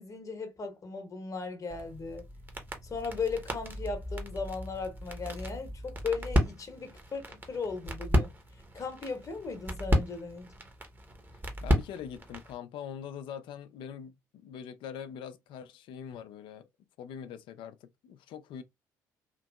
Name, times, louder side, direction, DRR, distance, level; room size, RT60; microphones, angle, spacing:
voice 1, 0.0-2.2 2.8-8.3 8.7-10.5, left 4 dB, 35° left, 0.9 m, -37 dB
sound 1, 1.7-12.6, equal, 20° right, 0.9 m, -33 dB
voice 2, 11.6-16.7 17.0-18.6, left 8 dB, 55° left, 0.4 m, -43 dB
2.9 x 2.6 x 2.3 m
figure-of-eight pair, 50°, 10 cm